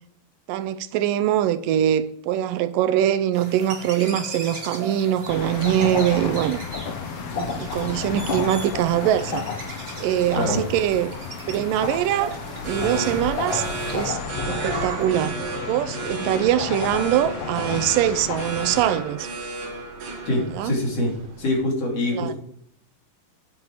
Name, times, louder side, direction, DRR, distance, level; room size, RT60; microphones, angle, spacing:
voice 1, 0.5-6.6 7.3-9.4 10.0-11.1 11.5-12.3 12.6-14.2 14.5-19.3 20.5-20.7 22.1-22.3, right 11 dB, 80° right, 2.1 m, -23 dB
sound 1, 3.3-14.1, right 2 dB, 30° right, 1.1 m, -38 dB
sound 2, 5.3-19.0, left 6 dB, 80° left, 1.2 m, -32 dB
sound 3, 12.0-21.6, right 3 dB, 65° right, 3.1 m, -33 dB
voice 2, 20.3-21.1 21.4-22.4, left 1 dB, 45° left, 4.0 m, -24 dB
9.4 x 8.7 x 4.6 m
omnidirectional pair, 4.1 m